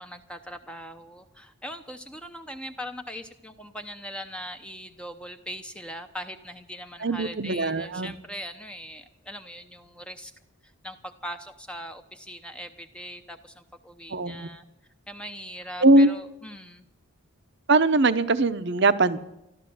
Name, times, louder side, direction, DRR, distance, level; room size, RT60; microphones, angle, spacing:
voice 1, 0.0-10.3 10.6-14.6 15.1-16.9, equal, 5° left, 6 dB, 0.7 m, -40 dB
voice 2, 7.0-8.1 14.1-14.5 15.8-16.1 17.7-19.2, right 2 dB, 50° right, 12 dB, 0.8 m, -21 dB
13.5 x 12.0 x 7.7 m, 0.86 s
head